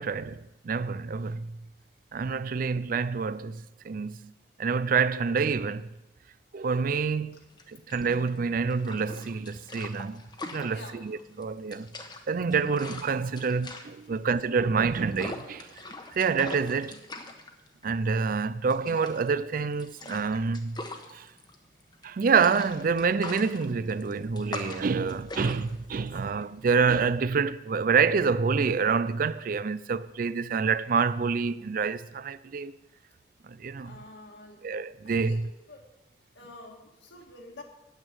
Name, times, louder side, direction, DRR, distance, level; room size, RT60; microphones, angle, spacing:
voice 1, 0.0-1.6 2.1-4.3 4.6-5.9 6.5-7.4 7.7-10.2 10.5-11.9 12.3-15.7 16.1-17.0 17.8-20.8 21.1-21.3 22.0-32.7 33.4-34.0 34.6-35.5, right 5 dB, 50° right, 0.4 m, -27 dB
sound 1, 7.5-27.2, left 2 dB, 25° left, 1.1 m, -43 dB
voice 2, 10.7-11.0 14.0-14.1 16.7-17.1 25.6-25.8 33.8-34.7 35.0-35.4 35.7-35.9 36.4-37.6, left 2 dB, 75° left, 1.9 m, -48 dB
9.1 x 8.9 x 7.9 m
head